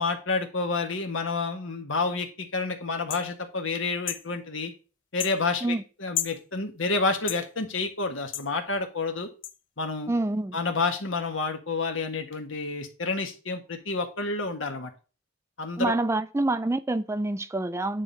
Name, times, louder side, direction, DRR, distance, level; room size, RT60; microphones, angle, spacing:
voice 1, 0.0-4.7 5.1-9.3 9.8-10.1 10.5-14.9 15.6-15.9, left 3 dB, 90° left, 1.7 m, -29 dB
sound 1, 3.1-3.3 4.1-4.2 5.2-5.4 6.1-6.4 7.3-7.4 8.3-8.5 9.4-9.5, left 12 dB, 70° left, 0.6 m, -31 dB
voice 2, 10.1-10.6 15.8-18.0, right 2 dB, 15° right, 0.3 m, -27 dB
9.7 x 3.8 x 4.0 m
head